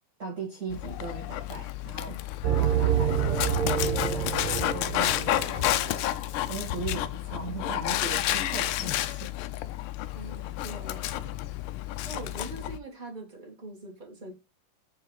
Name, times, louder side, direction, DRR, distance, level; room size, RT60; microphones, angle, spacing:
voice 1, 0.2-2.2 2.5-6.1 6.5-9.3, right 4 dB, 35° right, 2.0 m, -39 dB
Dog, 0.7-12.8, left 13 dB, 85° left, 1.5 m, -31 dB
sound 1, 2.4-5.9, right 9 dB, 70° right, 1.4 m, -27 dB
voice 2, 10.1-11.3 12.0-14.3, right 2 dB, 20° right, 2.5 m, -43 dB
4.9 x 4.8 x 4.6 m
omnidirectional pair, 2.3 m